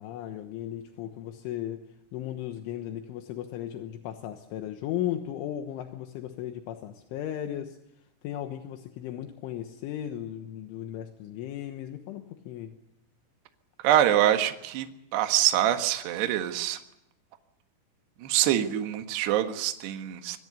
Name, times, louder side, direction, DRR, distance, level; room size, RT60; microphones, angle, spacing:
voice 1, 0.0-1.9 2.1-7.8 8.2-12.7, left 11 dB, 75° left, 6 dB, 3.5 m, -36 dB
voice 2, 13.8-14.9 15.1-16.8 18.2-20.4, right 12 dB, 65° right, 6 dB, 3.2 m, -25 dB
25.0 x 22.0 x 6.8 m, 0.83 s
omnidirectional pair, 6.0 m